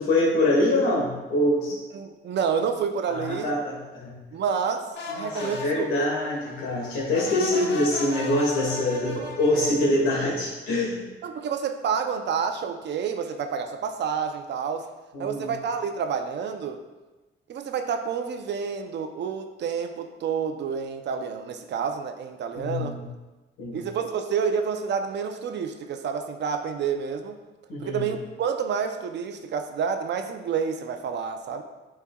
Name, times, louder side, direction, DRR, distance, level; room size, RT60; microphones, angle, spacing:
voice 1, 0.0-1.8 3.1-4.1 5.1-11.1 15.1-15.5 22.5-23.0 23.6-23.8 27.7-28.1, left 1 dB, 85° left, -3 dB, 2.1 m, -25 dB
voice 2, 1.9-3.5 4.3-4.9 5.2-6.1 9.2-9.8 11.2-14.9 15.2-16.8 17.5-22.9 23.7-27.4 27.8-31.6, right 6 dB, 60° right, 6 dB, 0.7 m, -29 dB
sound 1, 4.9-10.0, left 3 dB, 65° left, 1.3 m, -37 dB
9.8 x 4.4 x 2.4 m, 1.1 s
cardioid pair, 90°, 20 cm